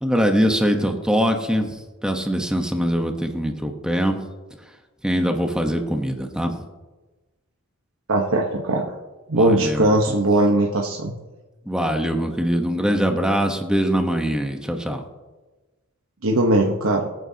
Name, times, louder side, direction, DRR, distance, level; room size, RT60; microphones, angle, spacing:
voice 1, 0.0-4.2 5.0-6.6 9.3-10.2 11.7-15.0, equal, 5° right, 4 dB, 1.0 m, -23 dB
voice 2, 8.1-8.9 9.3-11.1 16.2-17.1, right 1 dB, 75° right, 0 dB, 1.1 m, -19 dB
23.5 x 9.3 x 2.8 m, 1.2 s
head